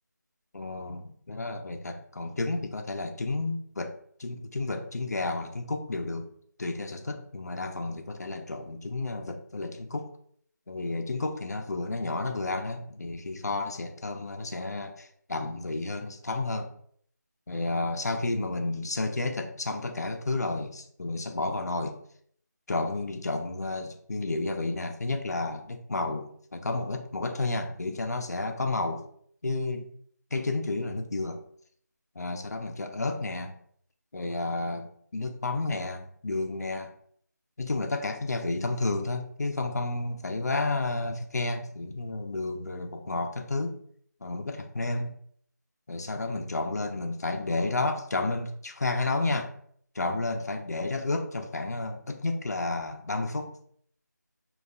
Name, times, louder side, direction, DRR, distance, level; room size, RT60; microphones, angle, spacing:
voice 1, 0.5-6.3 6.6-10.1 10.7-16.7 17.5-22.0 22.7-29.0 29.4-29.9 30.3-31.4 32.2-33.5 34.1-36.9 37.6-43.8 44.2-45.1 45.9-49.5 50.0-53.5, left 2 dB, 60° left, 5 dB, 0.4 m, -31 dB
2.3 x 2.0 x 3.4 m, 0.62 s
figure-of-eight pair, 175°, 10 cm